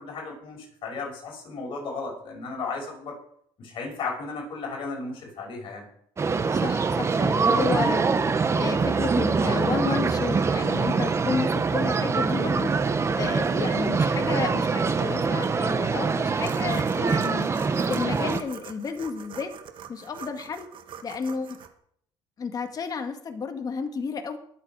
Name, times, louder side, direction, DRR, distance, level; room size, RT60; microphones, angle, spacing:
voice 1, 0.0-3.2 3.6-5.8, left 4 dB, 55° left, 0 dB, 6.7 m, -35 dB
sound 1, 6.2-18.4, right 4 dB, 25° right, 1.2 m, -24 dB
voice 2, 6.5-8.0 8.6-12.7 13.1-17.5 17.9-19.5 19.9-20.7 21.0-21.6 22.4-24.4, left 5 dB, 40° left, 6 dB, 1.8 m, -31 dB
sound 2, 16.4-21.7, right 8 dB, 55° right, 1.6 m, -44 dB
22.0 x 7.9 x 4.8 m, 0.66 s
cardioid pair, 105°, 10 cm